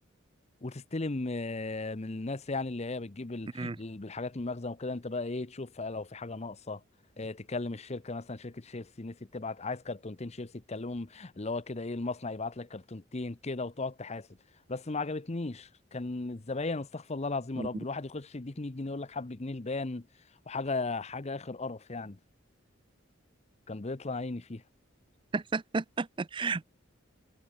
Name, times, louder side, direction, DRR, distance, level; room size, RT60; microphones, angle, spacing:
voice 1, 0.6-6.8 7.2-14.3 14.7-20.1 20.5-22.2 23.7-24.6, left 3 dB, 35° left, 0.8 m, -36 dB
voice 2, 25.3-26.6, right 4 dB, 25° right, 0.5 m, -32 dB
head